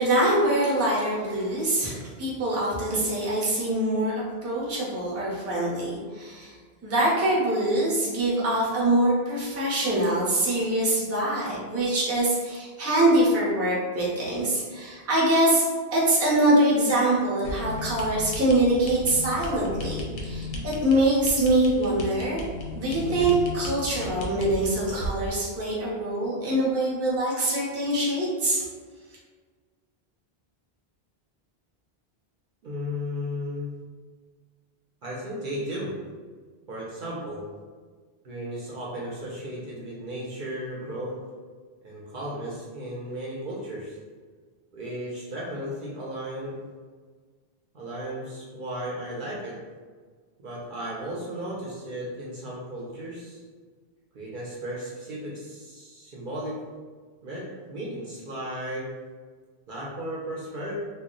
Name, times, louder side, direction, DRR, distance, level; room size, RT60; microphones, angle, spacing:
voice 1, 0.0-4.1 4.4-6.5 6.8-15.6 15.9-22.4 22.7-28.6, right 1 dB, 20° right, -6 dB, 0.5 m, -24 dB
sound 1, 17.4-25.3, left 1 dB, 60° left, 0.7 m, -35 dB
voice 2, 32.6-33.7 35.0-35.9 36.7-37.4 38.2-41.2 41.8-43.9 44.7-46.6 47.7-49.6 50.4-53.4 54.1-56.6 57.2-58.9 59.7-60.7, equal, 60° right, -5 dB, 0.7 m, -35 dB
2.2 x 2.0 x 3.6 m, 1.5 s
omnidirectional pair, 1.1 m